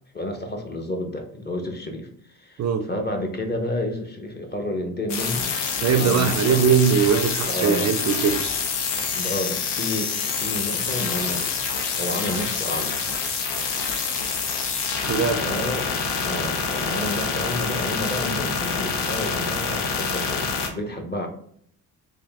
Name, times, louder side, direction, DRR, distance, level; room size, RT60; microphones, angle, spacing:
voice 1, 0.1-5.5 5.9-6.7 7.5-7.9 9.1-11.5 11.9-13.0 15.4-15.9 16.2-21.3, left 1 dB, 25° left, 0.8 m, -30 dB
sound 1, 5.1-20.7, left 5 dB, 85° left, 0.7 m, -26 dB
voice 2, 5.8-8.4 15.1-15.4, right 7 dB, 45° right, 0.4 m, -20 dB
3.4 x 2.6 x 3.4 m
cardioid pair, 80°, 39 cm